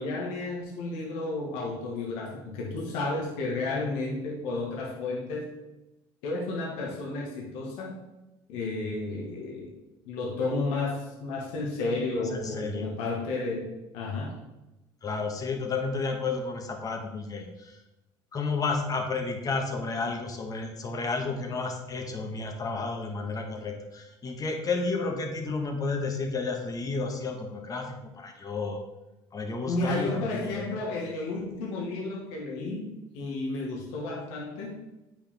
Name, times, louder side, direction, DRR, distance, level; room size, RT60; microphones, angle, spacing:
voice 1, 0.0-5.5 6.2-7.9 8.5-9.7 10.0-13.7 13.9-14.3 29.7-34.8, left 2 dB, 85° left, -1 dB, 1.7 m, -32 dB
voice 2, 12.3-12.9 15.0-17.8 18.3-28.8 29.3-30.7, left 3 dB, 35° left, 3 dB, 1.5 m, -32 dB
8.2 x 6.0 x 3.6 m, 1.0 s
supercardioid pair, 90°, 11 cm